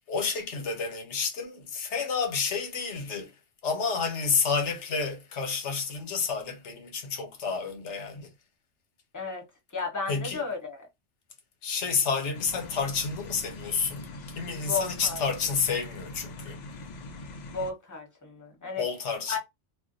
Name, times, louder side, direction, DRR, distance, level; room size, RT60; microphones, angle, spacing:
voice 1, 0.1-3.3 3.6-8.3 10.1-10.4 11.6-14.0 14.4-16.6 18.8-19.4, left 5 dB, 75° left, 1.1 m, -30 dB
voice 2, 9.7-10.9 14.7-15.2 17.5-18.8 19.3-19.4, left 4 dB, 20° left, 0.8 m, -33 dB
sound 1, 12.3-17.7, left 2 dB, 55° left, 0.5 m, -42 dB
2.4 x 2.1 x 3.9 m
omnidirectional pair, 1.2 m